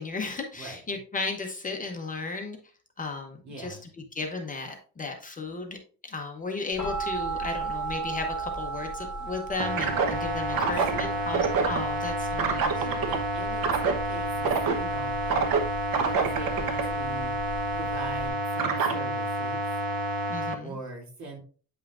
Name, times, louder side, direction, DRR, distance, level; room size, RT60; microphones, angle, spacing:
voice 1, 0.0-2.6 3.0-3.8 4.1-5.8 6.0-12.9 20.3-20.8, left 3 dB, 20° left, 3 dB, 0.8 m, -35 dB
voice 2, 3.4-3.8 10.5-11.3 12.8-17.3 17.7-19.7 20.6-21.4, right 3 dB, 50° right, -1 dB, 2.8 m, -42 dB
sound 1, 6.8-18.3, right 4 dB, 5° right, 3.4 m, -36 dB
sound 2, 9.6-20.5, right 3 dB, 70° right, 1.1 m, -27 dB
8.7 x 5.5 x 2.5 m, 0.40 s
cardioid pair, 145°, 36 cm